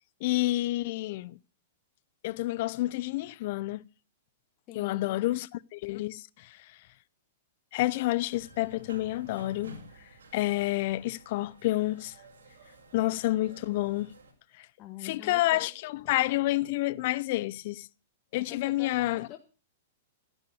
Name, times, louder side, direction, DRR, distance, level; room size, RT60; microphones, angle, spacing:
voice 1, 0.2-1.4 2.2-3.8 4.7-6.6 7.7-9.8 10.3-12.1 12.9-14.1 14.6-14.7 15.0-17.9 18.3-19.3, left 17 dB, 55° left, 0.6 m, -29 dB
voice 2, 4.7-5.3 14.8-15.7 18.4-19.4, left 12 dB, 40° left, 1.7 m, -44 dB
sound 1, 8.3-14.3, right 1 dB, 80° right, 5.1 m, -52 dB
14.0 x 11.0 x 6.5 m
hypercardioid pair, 110°, 0 cm